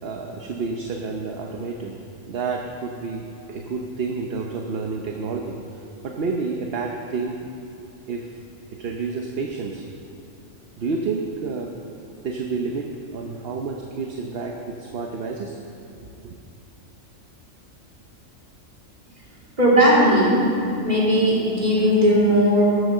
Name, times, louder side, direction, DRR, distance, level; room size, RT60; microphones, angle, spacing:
voice 1, 0.0-1.9 2.3-5.6 6.0-7.5 8.1-8.3 8.8-9.8 10.8-11.7 12.2-15.6 16.2-16.3, right 4 dB, 50° right, 2 dB, 1.0 m, -29 dB
voice 2, 19.6-20.5 20.8-22.6, equal, 30° right, -7 dB, 3.3 m, -17 dB
13.0 x 8.1 x 6.6 m, 2.7 s
omnidirectional pair, 1.4 m